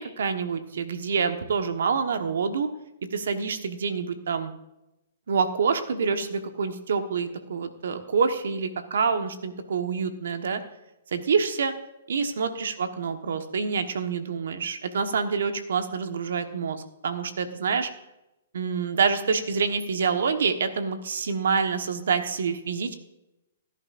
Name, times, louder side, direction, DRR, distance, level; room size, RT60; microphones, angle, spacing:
voice 1, 0.0-2.7 3.1-4.5 5.3-10.6 11.1-11.7 12.1-17.9 18.5-22.9, right 5 dB, 75° right, 8 dB, 1.3 m, -27 dB
17.5 x 10.5 x 2.5 m, 0.92 s
hypercardioid pair, 135°, 0 cm